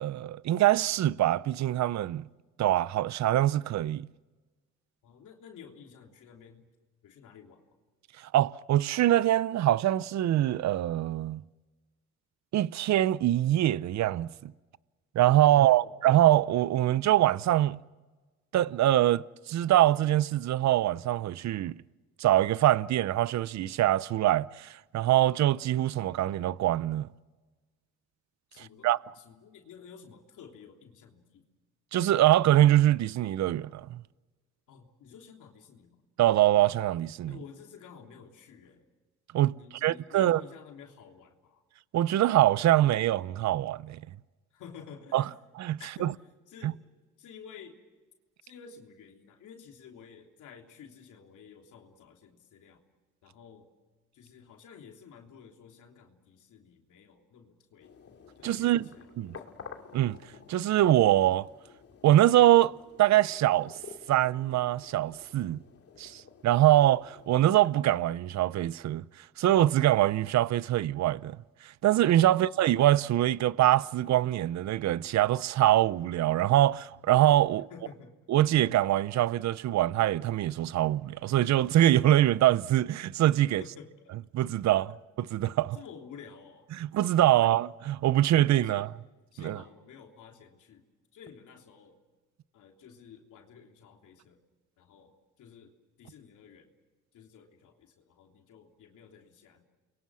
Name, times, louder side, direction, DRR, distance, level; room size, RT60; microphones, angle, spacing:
voice 1, 0.0-2.2 2.6-4.1 8.3-11.4 12.5-14.5 15.1-17.8 18.5-21.8 22.2-27.1 28.6-29.0 31.9-34.0 36.2-37.3 39.3-39.5 39.8-40.4 41.9-44.0 45.1-45.2 45.6-46.1 46.6-46.7 58.4-58.9 59.2-59.4 59.9-60.2 60.5-61.5 62.0-63.8 64.1-65.6 66.0-69.0 69.4-71.4 71.6-77.7 78.3-83.6 84.3-84.9 85.3-85.8 86.8-88.9 89.4-89.6, right 13 dB, 65° right, 0.7 m, -24 dB
voice 2, 5.0-6.7 7.0-7.7 15.4-16.0 28.5-31.5 34.7-36.0 37.3-38.9 39.5-41.6 44.5-45.4 45.8-46.8 47.2-47.8 48.4-52.8 53.2-53.7 54.1-57.9 58.4-59.5 72.3-72.5 77.5-78.2 83.6-84.1 84.9-85.0 85.7-86.7 87.4-87.6 88.6-88.9 89.3-90.8 91.1-92.0 92.5-94.4 94.8-96.7 97.1-99.6, left 7 dB, 80° left, 3.4 m, -51 dB
sound 1, 57.8-67.9, left 6 dB, 50° left, 2.5 m, -51 dB
30.0 x 23.0 x 6.3 m
cardioid pair, 90°, 30 cm